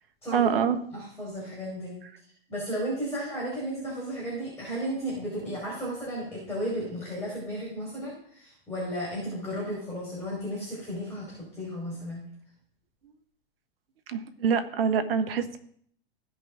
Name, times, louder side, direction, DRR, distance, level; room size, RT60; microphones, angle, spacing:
voice 1, 0.3-0.8 14.1-15.6, right 7 dB, 75° right, 9 dB, 1.3 m, -25 dB
voice 2, 0.9-2.0 2.5-12.3, equal, 10° left, -5 dB, 4.9 m, -34 dB
16.0 x 5.4 x 3.8 m, 0.64 s
hypercardioid pair, 110°, 30 cm